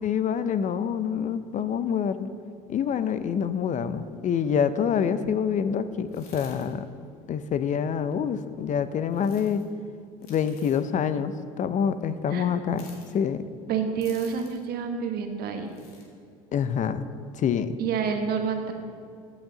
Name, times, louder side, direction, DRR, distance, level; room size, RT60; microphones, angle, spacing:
voice 1, 0.0-2.3 2.7-6.8 7.3-9.6 10.3-12.9 13.1-13.4 16.5-17.1 17.3-17.7, left 7 dB, 45° left, 12 dB, 0.6 m, -26 dB
sound 1, 6.1-6.7 9.1-9.6 10.2-10.8 12.7-13.1 14.0-14.6 15.7-16.1, left 5 dB, 90° left, 1.8 m, -51 dB
voice 2, 13.7-15.7 17.8-18.7, right 6 dB, 55° right, 5 dB, 1.2 m, -28 dB
14.0 x 6.2 x 3.9 m, 2.3 s
hypercardioid pair, 70°, 18 cm